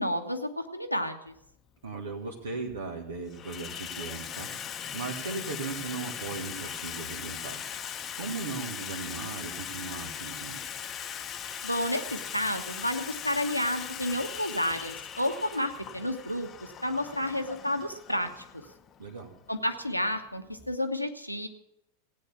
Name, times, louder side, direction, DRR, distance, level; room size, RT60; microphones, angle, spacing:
voice 1, 0.0-1.3 11.6-16.5 16.8-18.4 19.5-21.5, left 1 dB, 90° left, 5 dB, 1.3 m, -31 dB
Water tap faucet / Sink (filling or washing), 1.4-1.5 2.4-2.8 3.1-20.7, left 8 dB, 25° left, 1.0 m, -40 dB
voice 2, 1.8-4.5 4.9-7.6 8.2-10.6 19.0-19.3, right 4 dB, 65° right, -1 dB, 1.9 m, -37 dB
17.0 x 9.1 x 7.0 m, 0.80 s
figure-of-eight pair, 90°, 0 cm